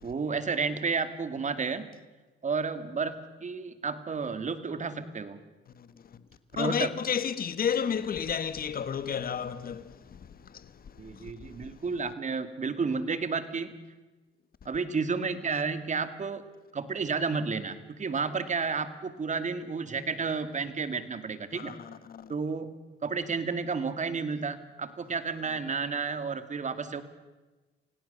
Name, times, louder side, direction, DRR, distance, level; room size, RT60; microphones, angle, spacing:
voice 1, 0.0-1.9 2.4-5.4 6.5-6.9 11.0-13.7 14.7-16.4 16.7-21.8 22.3-22.7 23.0-27.0, right 5 dB, 40° right, 2.2 m, -31 dB
voice 2, 6.6-10.7 11.1-11.3 21.5-22.3, left 7 dB, 50° left, 1.4 m, -32 dB
28.5 x 17.5 x 6.8 m
cardioid pair, 90°, 20 cm